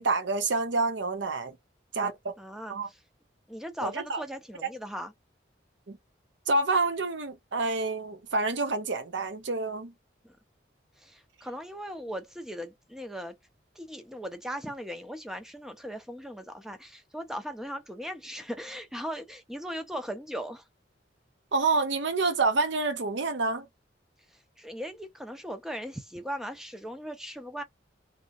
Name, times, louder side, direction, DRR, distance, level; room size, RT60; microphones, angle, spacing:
voice 1, 0.0-1.6 1.9-2.3 2.7-2.9 3.8-4.2 4.6-4.7 5.9-6.0 6.5-9.9 21.5-23.7, right 3 dB, 75° right, 0.8 m, -28 dB
voice 2, 2.4-3.0 3.5-5.1 10.2-10.4 11.0-13.3 13.8-20.6 24.6-27.6, equal, 5° right, 0.5 m, -38 dB
2.7 x 2.6 x 2.3 m
head